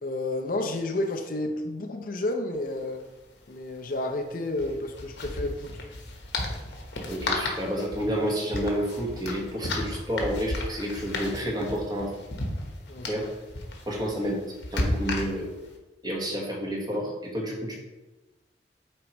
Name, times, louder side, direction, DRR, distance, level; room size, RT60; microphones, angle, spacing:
voice 1, 0.0-3.0 3.5-5.7 12.9-13.3, left 2 dB, 50° left, 4 dB, 0.6 m, -31 dB
sound 1, 2.5-2.6 2.8-3.0 4.5-15.7, left 1 dB, 70° left, 1.2 m, -34 dB
voice 2, 7.1-12.1 13.1-13.3 13.9-14.4 14.7-15.5 16.0-17.8, equal, 20° right, -2 dB, 1.3 m, -30 dB
8.5 x 4.5 x 3.0 m, 1.1 s
head